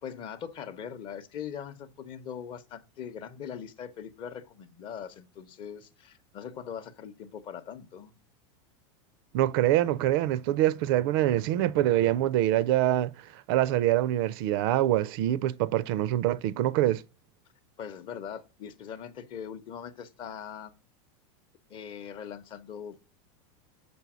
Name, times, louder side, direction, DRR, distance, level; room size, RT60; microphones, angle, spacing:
voice 1, 0.0-8.1 17.8-20.7 21.7-23.0, left 8 dB, 30° left, 0.7 m, -41 dB
voice 2, 9.3-17.0, right 13 dB, 50° right, 0.4 m, -25 dB
6.9 x 4.3 x 6.0 m
supercardioid pair, 155°, 15 cm